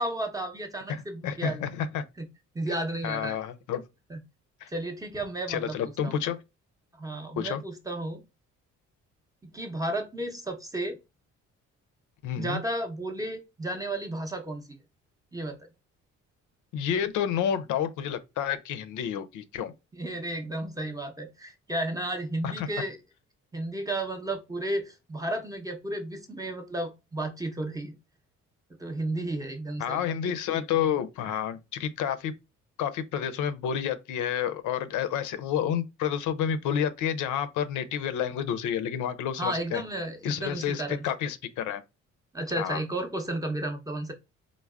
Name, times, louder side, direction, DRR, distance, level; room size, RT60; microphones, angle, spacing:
voice 1, 0.0-1.6 2.2-2.3 2.5-3.4 4.1-4.2 4.7-5.8 6.0-6.1 6.9-8.2 9.5-11.0 12.4-14.6 15.3-15.6 19.9-23.0 23.5-27.9 28.8-30.1 39.4-41.0 42.3-44.1, right 1 dB, 10° right, 0.6 m, -33 dB
voice 2, 0.9-2.0 3.0-3.8 4.6-4.7 5.5-6.4 7.4-7.6 12.2-12.6 16.7-19.7 22.4-22.7 29.8-32.3 32.8-39.8 40.2-41.8 42.6-42.8, left 9 dB, 80° left, 0.5 m, -30 dB
3.3 x 2.0 x 2.3 m
cardioid pair, 90°, 30 cm